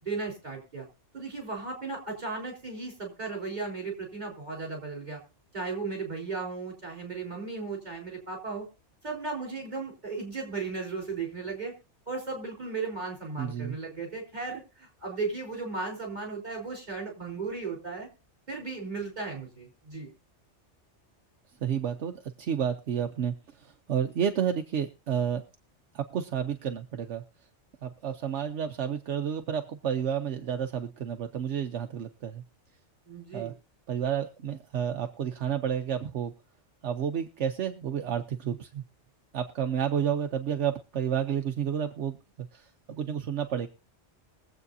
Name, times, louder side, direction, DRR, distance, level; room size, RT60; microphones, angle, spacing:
voice 1, 0.0-0.8 1.1-5.2 5.5-8.7 9.0-11.7 12.1-18.1 18.5-20.1 33.1-33.5, right 4 dB, 35° right, -1 dB, 4.2 m, -36 dB
voice 2, 13.4-13.8 21.6-25.4 25.9-27.2 27.8-32.4 33.3-33.5 33.9-36.3 36.8-38.8 39.3-43.7, right 8 dB, 75° right, 7 dB, 1.1 m, -31 dB
22.5 x 8.0 x 2.7 m, 0.31 s
omnidirectional pair, 1.2 m